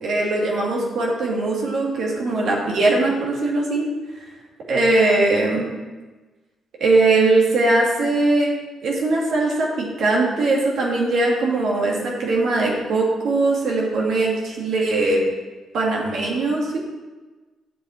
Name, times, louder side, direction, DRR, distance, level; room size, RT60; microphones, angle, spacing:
voice 1, 0.0-3.9 4.7-5.7 6.8-8.5 8.8-15.2 15.7-16.8, right 2 dB, 70° right, -3 dB, 2.1 m, -20 dB
8.6 x 6.7 x 4.4 m, 1.3 s
cardioid pair, 70°, 0 cm